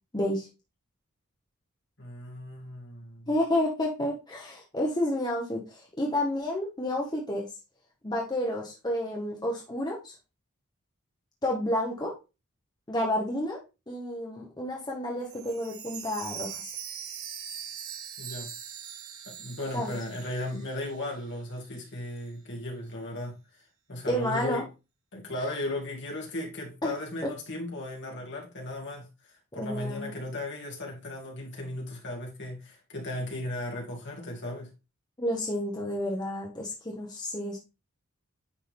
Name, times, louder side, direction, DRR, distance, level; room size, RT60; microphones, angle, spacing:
voice 1, 0.1-0.5 3.3-7.5 8.0-10.1 11.4-12.1 12.9-13.6 13.9-16.7 19.7-20.0 24.1-24.6 26.8-26.9 29.5-30.1 35.2-37.6, left 1 dB, 20° left, 1.2 m, -30 dB
voice 2, 2.0-3.3 18.2-18.5 19.3-23.4 23.9-24.6 25.1-34.7, left 1 dB, 50° left, 2.2 m, -36 dB
Chime, 15.2-21.2 21.5-21.6 22.2-22.3, right 8 dB, 70° right, 1.3 m, -41 dB
9.7 x 3.7 x 3.4 m
head